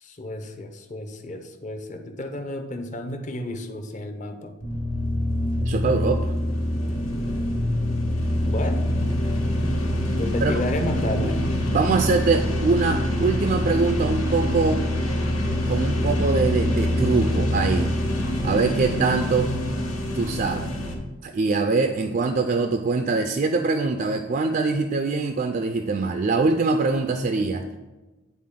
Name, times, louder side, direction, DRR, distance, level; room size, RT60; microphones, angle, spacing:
voice 1, 0.0-4.6 8.4-8.9 10.2-11.4, left 1 dB, 35° left, 7 dB, 0.6 m, -31 dB
sound 1, 4.6-20.9, left 1 dB, 90° left, 1.5 m, -25 dB
voice 2, 5.6-6.3 10.4-10.6 11.7-14.8 15.7-17.9 18.4-19.5 20.1-20.7 21.2-27.6, right 4 dB, 40° right, 6 dB, 0.3 m, -23 dB
9.3 x 4.1 x 3.7 m, 1.1 s
head